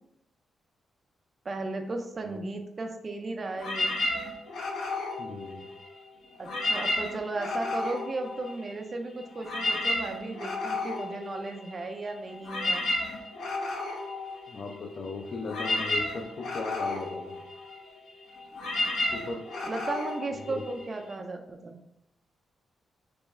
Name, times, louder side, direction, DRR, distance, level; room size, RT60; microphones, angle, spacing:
voice 1, 1.5-4.1 6.4-12.9 19.6-21.8, right 2 dB, 30° right, 4 dB, 0.3 m, -35 dB
sound 1, 3.6-6.0 6.4-8.9 9.2-21.1, left 2 dB, 75° left, 0.7 m, -32 dB
voice 2, 5.2-5.7 14.5-17.4 19.1-19.5 20.3-20.6, left 3 dB, 50° left, 2 dB, 0.4 m, -37 dB
3.5 x 3.0 x 3.0 m, 0.84 s
wide cardioid pair, 150°, 0 cm